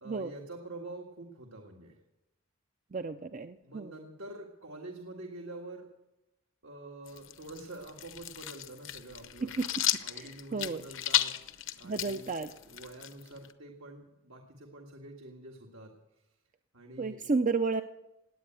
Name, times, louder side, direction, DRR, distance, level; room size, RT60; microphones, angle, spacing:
voice 1, 0.0-2.0 3.6-5.9 6.6-9.5 10.0-11.3 11.8-12.3 12.6-15.9 16.7-17.2, right 2 dB, 75° right, 1 dB, 1.8 m, -46 dB
voice 2, 2.9-3.9 9.4-9.8 10.1-10.8 11.8-12.5 17.0-17.8, right 4 dB, 35° right, 9 dB, 0.5 m, -32 dB
sound 1, 7.1-13.5, left 12 dB, 65° left, 0.8 m, -34 dB
18.0 x 8.9 x 8.9 m, 0.93 s
head